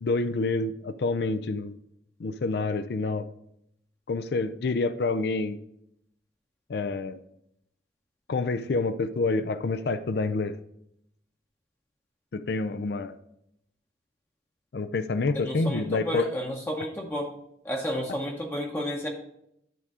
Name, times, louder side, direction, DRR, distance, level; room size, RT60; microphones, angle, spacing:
voice 1, 0.0-1.7 2.2-3.2 4.1-5.6 6.7-7.2 8.3-10.5 12.3-13.1 14.7-16.3, left 3 dB, 60° left, 12 dB, 0.4 m, -27 dB
voice 2, 15.3-17.3 17.6-19.1, equal, 10° left, -1 dB, 0.8 m, -31 dB
11.0 x 3.7 x 4.8 m, 0.76 s
head